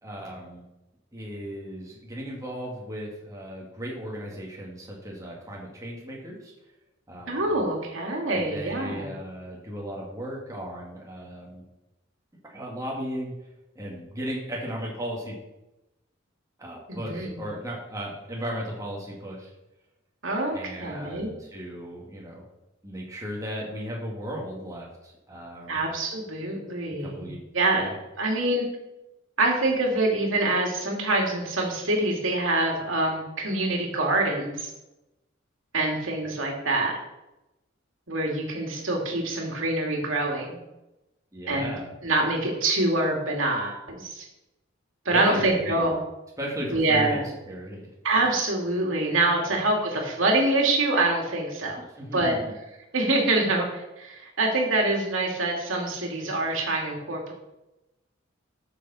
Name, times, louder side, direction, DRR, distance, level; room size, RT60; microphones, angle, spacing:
voice 1, 0.0-0.6 1.1-6.5 7.1-7.5 8.5-11.6 12.5-13.3 13.7-15.4 16.6-19.5 20.5-22.4 22.8-25.8 27.0-27.4 27.7-28.0 41.3-41.9 45.1-45.9 46.4-47.9 49.4-49.6 51.8-52.5, equal, 15° right, -3 dB, 2.3 m, -36 dB
voice 2, 7.3-9.1 16.9-17.4 20.2-21.3 25.7-28.6 29.4-34.7 35.7-37.0 38.1-40.6 41.5-41.7 42.0-44.2 45.0-46.0 46.7-47.3 48.0-51.8 52.1-52.4 52.9-57.3, right 2 dB, 75° right, 0 dB, 2.6 m, -25 dB
13.0 x 6.8 x 4.4 m, 0.96 s
head